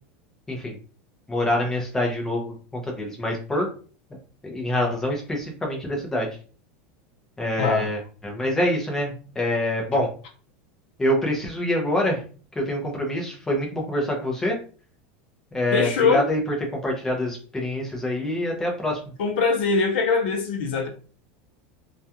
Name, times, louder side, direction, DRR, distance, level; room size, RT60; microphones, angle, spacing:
voice 1, 1.3-3.7 4.1-4.2 4.4-6.3 7.4-10.1 11.0-12.2 12.5-14.6 15.5-16.6 16.8-19.0, left 1 dB, 5° left, 0 dB, 0.5 m, -25 dB
voice 2, 7.6-7.9 15.7-16.3 19.2-20.9, left 4 dB, 70° left, 4 dB, 0.6 m, -22 dB
2.3 x 2.2 x 2.7 m, 0.40 s
supercardioid pair, 180°, 6 cm